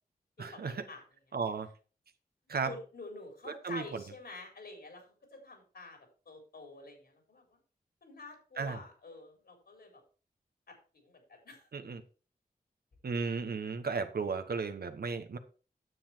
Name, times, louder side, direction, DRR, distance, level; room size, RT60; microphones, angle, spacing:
voice 1, 0.4-0.8 1.3-1.7 2.5-2.7 3.5-4.0 8.6-8.8 11.7-12.0 13.0-15.4, right 5 dB, 75° right, 9 dB, 1.2 m, -35 dB
voice 2, 2.6-5.0 5.3-7.4 8.0-10.0 10.7-11.7, left 2 dB, 80° left, 3 dB, 4.2 m, -48 dB
9.6 x 7.7 x 4.5 m, 0.37 s
wide cardioid pair, 80°, 16 cm